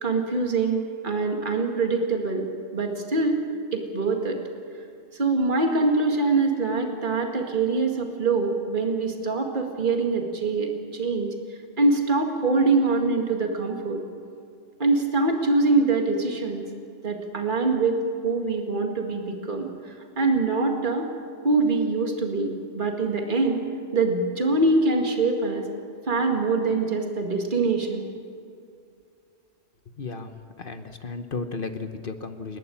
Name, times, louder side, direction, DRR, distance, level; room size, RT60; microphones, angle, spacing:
voice 1, 0.0-2.5 2.7-3.4 3.7-4.4 5.1-11.3 11.8-14.0 14.8-16.7 17.0-19.7 20.2-21.1 21.4-23.7 23.9-25.7 26.1-28.0, right 3 dB, 40° right, 2 dB, 2.2 m, -24 dB
voice 2, 29.9-32.6, left 4 dB, 45° left, 8 dB, 1.2 m, -34 dB
29.5 x 11.5 x 8.6 m, 2.4 s
omnidirectional pair, 1.3 m